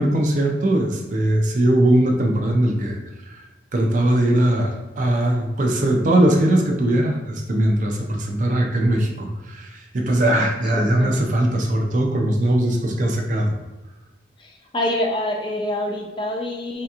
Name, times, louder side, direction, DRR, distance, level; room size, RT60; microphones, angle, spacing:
voice 1, 0.0-3.0 3.3-3.4 3.7-13.5, right 1 dB, 45° right, 2 dB, 0.4 m, -20 dB
voice 2, 10.7-11.2 14.4-16.8, left 1 dB, 25° left, 1 dB, 0.4 m, -26 dB
3.3 x 2.8 x 2.3 m, 1.1 s
head